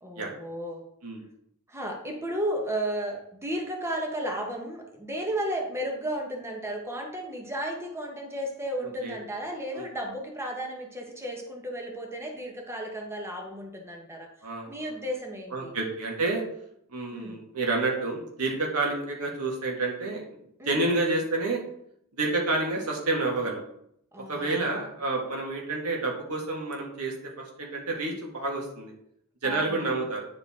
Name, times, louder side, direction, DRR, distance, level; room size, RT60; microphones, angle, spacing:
voice 1, 0.0-0.8 1.7-14.3 14.7-15.8 17.1-17.4 20.6-20.9 24.1-24.8 29.4-29.9, right 1 dB, 10° right, 1 dB, 1.0 m, -34 dB
voice 2, 8.8-9.2 9.7-9.9 14.4-14.7 15.5-16.4 16.9-20.4 20.7-21.6 22.1-23.6 24.3-28.9 29.4-30.3, right 2 dB, 85° right, 0 dB, 1.7 m, -29 dB
9.6 x 4.4 x 3.6 m, 0.72 s
head